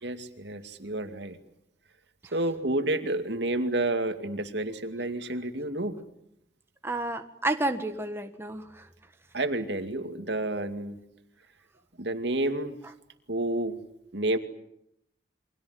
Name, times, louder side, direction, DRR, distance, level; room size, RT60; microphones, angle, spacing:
voice 1, 0.0-1.4 2.3-6.0 9.3-11.0 12.0-12.8 13.3-13.8 14.1-14.4, right 1 dB, 65° right, 8 dB, 2.5 m, -30 dB
voice 2, 6.8-8.9, right 2 dB, 15° right, 6 dB, 1.6 m, -31 dB
29.5 x 24.5 x 7.8 m, 0.78 s
head